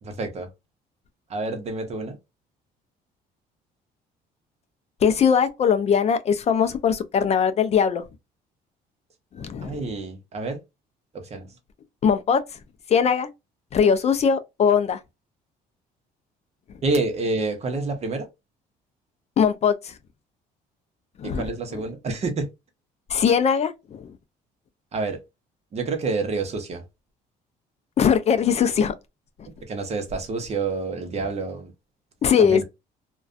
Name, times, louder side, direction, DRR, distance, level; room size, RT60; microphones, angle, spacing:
voice 1, 0.0-0.5 1.3-2.2 9.6-10.6 11.1-11.5 16.8-18.3 21.2-22.5 24.9-25.2 25.7-26.8 29.6-31.7 32.4-32.6, right 3 dB, 40° right, 0.8 m, -28 dB
voice 2, 5.0-8.0 9.4-9.8 12.0-12.4 12.9-13.3 13.7-15.0 19.4-19.9 21.2-21.4 23.1-24.1 28.0-28.9 32.2-32.6, left 7 dB, 40° left, 0.4 m, -20 dB
2.4 x 2.2 x 2.4 m
cardioid pair, 110°, 17 cm